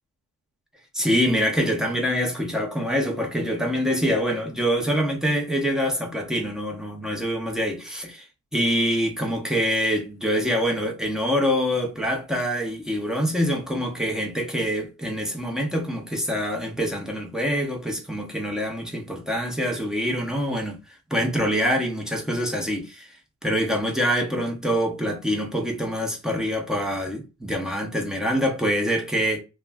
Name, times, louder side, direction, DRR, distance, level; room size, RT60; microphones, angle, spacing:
voice 1, 0.9-8.3 8.5-23.2 23.4-29.4, equal, ahead, 0.7 m, -25 dB
2.3 x 2.1 x 3.3 m
cardioid pair, 125°, 38 cm